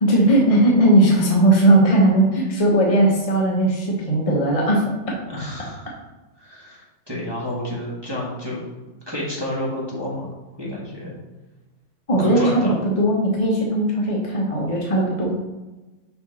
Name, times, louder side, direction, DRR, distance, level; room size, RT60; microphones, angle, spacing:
voice 1, 0.0-4.8 12.1-15.3, right 1 dB, 30° left, -3 dB, 0.7 m, -18 dB
voice 2, 5.3-5.9 6.4-8.6 9.1-10.3 10.6-11.2 12.2-12.8, left 1 dB, 15° right, -6 dB, 1.4 m, -30 dB
5.8 x 5.5 x 4.1 m, 1.1 s
omnidirectional pair, 2.2 m